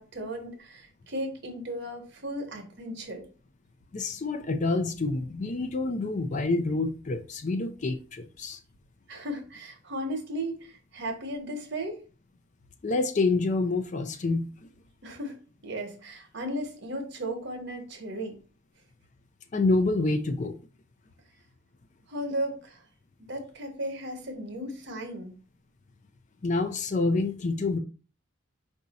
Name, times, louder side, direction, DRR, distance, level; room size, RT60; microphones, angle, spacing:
voice 1, 0.0-3.3 9.1-12.0 15.0-18.4 22.1-22.8 23.3-25.4, right 1 dB, 60° right, 1.1 m, -35 dB
voice 2, 3.9-8.6 12.8-14.5 19.5-20.6 26.4-27.8, left 3 dB, 40° left, 0.4 m, -27 dB
4.7 x 2.7 x 4.1 m
head